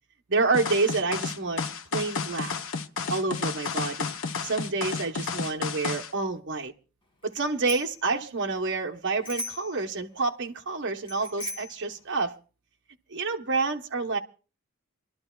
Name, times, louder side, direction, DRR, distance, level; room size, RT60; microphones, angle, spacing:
voice 1, 0.3-1.6 1.9-2.5 3.1-4.1 4.4-6.7 7.2-12.3 13.1-14.2, right 3 dB, 60° right, 0.9 m, -28 dB
sound 1, 0.5-6.1, left 5 dB, 65° left, 0.8 m, -31 dB
Bicycle bell, 7.3-8.0 9.2-9.8 11.1-11.8, left 1 dB, 25° left, 1.9 m, -37 dB
27.0 x 12.0 x 2.3 m
head